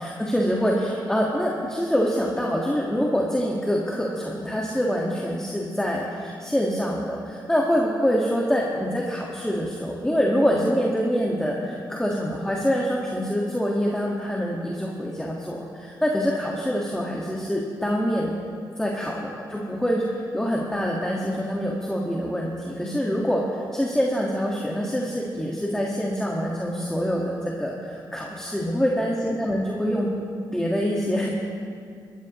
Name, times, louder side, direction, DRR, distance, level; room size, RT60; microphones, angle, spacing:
voice 1, 0.0-18.4 18.8-30.1 30.5-31.4, equal, 5° left, -3 dB, 1.8 m, -25 dB
19.5 x 13.5 x 3.1 m, 2.3 s
cardioid pair, 60°, 9 cm